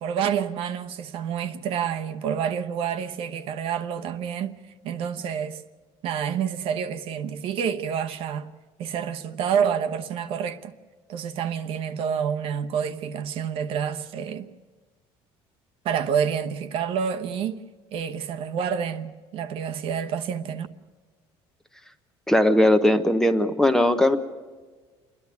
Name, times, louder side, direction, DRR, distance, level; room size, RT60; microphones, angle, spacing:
voice 1, 0.0-4.5 4.8-5.6 6.0-8.5 8.8-10.7 11.1-14.5 15.8-17.6 17.9-20.7, right 7 dB, 60° right, 1.0 m, -28 dB
voice 2, 22.3-24.2, left 1 dB, 5° left, 0.9 m, -19 dB
28.0 x 11.0 x 9.4 m
cardioid pair, 150°, 11 cm